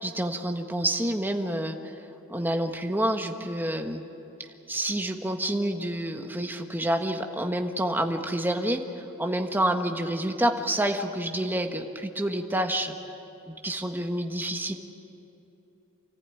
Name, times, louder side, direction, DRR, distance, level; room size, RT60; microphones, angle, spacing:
voice 1, 0.0-1.8 2.3-4.0 4.7-12.9 13.5-14.7, right 1 dB, 10° right, 4 dB, 1.3 m, -28 dB
27.5 x 15.0 x 9.3 m, 2.9 s
head